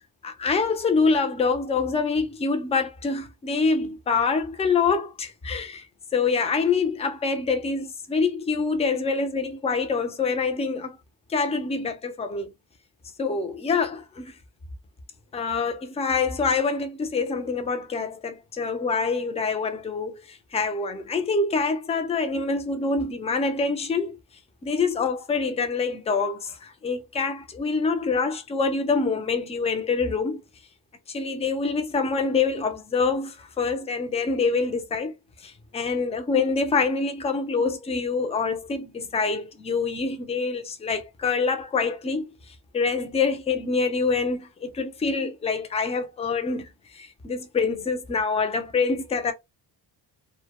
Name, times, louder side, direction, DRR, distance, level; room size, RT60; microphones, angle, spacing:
voice 1, 0.2-5.8 6.1-11.0 11.3-12.5 13.2-14.3 15.3-24.2 24.6-30.4 31.1-35.1 35.4-42.3 42.7-49.3, left 4 dB, 15° left, 0.3 m, -26 dB
2.2 x 2.1 x 2.8 m
cardioid pair, 135°, 44 cm